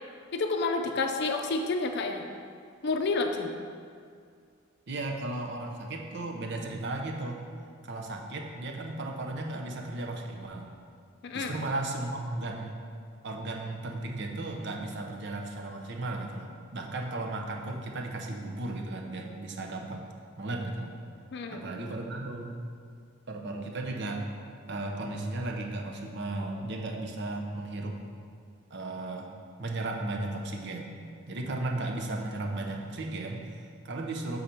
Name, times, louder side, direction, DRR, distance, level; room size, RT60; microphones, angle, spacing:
voice 1, 0.3-2.3 2.8-3.5 11.2-11.5 21.3-21.6, left 3 dB, 55° left, 4 dB, 0.5 m, -29 dB
voice 2, 4.9-7.4 7.8-10.7 11.3-12.8 13.2-20.1 20.4-20.9 21.5-22.6 23.3-24.2 24.7-28.0 28.7-29.3 29.6-31.0 31.3-34.4, right 2 dB, 55° right, 2 dB, 0.7 m, -35 dB
6.8 x 4.0 x 4.4 m, 2.2 s
head